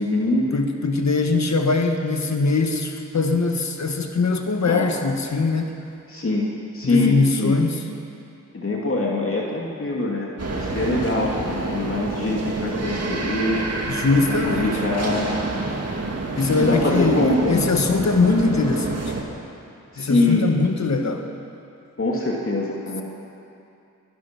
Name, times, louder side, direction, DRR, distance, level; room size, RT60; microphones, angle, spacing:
voice 1, 0.0-0.5 4.7-4.9 6.1-6.5 6.7-7.6 8.5-13.6 14.1-15.3 16.5-17.7 19.9-20.5 22.0-23.0, left 2 dB, 40° left, -2 dB, 2.4 m, -23 dB
voice 2, 0.5-5.7 6.8-7.8 13.9-14.8 16.4-19.1 20.0-21.3, left 3 dB, 55° left, 4 dB, 1.6 m, -22 dB
sound 1, 10.4-19.2, right 2 dB, 50° right, 2.2 m, -28 dB
20.5 x 11.5 x 6.1 m, 2.6 s
cardioid pair, 55°, 32 cm